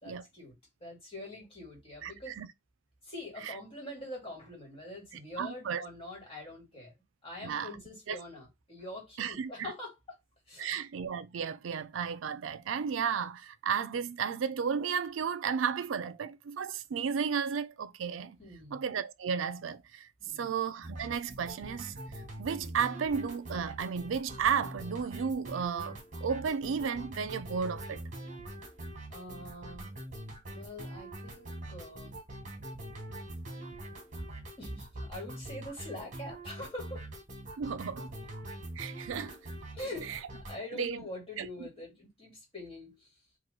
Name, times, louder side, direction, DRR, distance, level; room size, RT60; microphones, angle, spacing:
voice 1, 0.0-0.6 0.8-2.4 3.0-6.9 7.2-10.2 10.5-10.7 18.4-18.8 20.2-20.5 29.1-29.9 30.5-32.2 34.6-37.1 39.7-40.1 40.5-43.1, left 1 dB, 30° left, 1.9 m, -44 dB
voice 2, 2.0-2.5 5.4-5.8 7.4-7.7 8.1-8.2 9.2-9.7 10.6-18.4 18.7-20.1 20.4-28.0 37.6-38.2 38.8-39.4 40.1-40.2 40.7-41.0 41.4-41.5, right 6 dB, 80° right, 0.4 m, -33 dB
sound 1, 20.8-40.6, right 1 dB, 40° right, 1.2 m, -44 dB
3.0 x 2.5 x 4.0 m
head